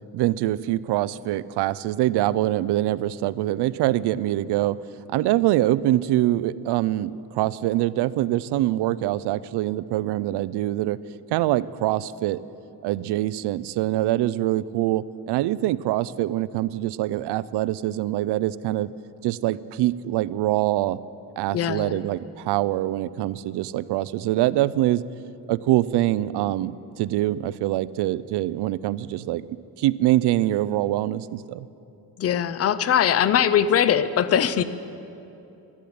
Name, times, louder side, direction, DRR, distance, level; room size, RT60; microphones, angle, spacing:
voice 1, 0.1-4.8 5.1-11.0 11.3-12.4 12.8-18.9 19.2-21.0 21.4-25.0 25.5-29.5 29.8-31.7, right 15 dB, 85° right, 18 dB, 0.5 m, -24 dB
voice 2, 21.5-22.0 32.2-34.6, left 9 dB, 40° left, 14 dB, 0.5 m, -21 dB
13.0 x 12.0 x 8.6 m, 2.9 s
cardioid pair, 175°, 39 cm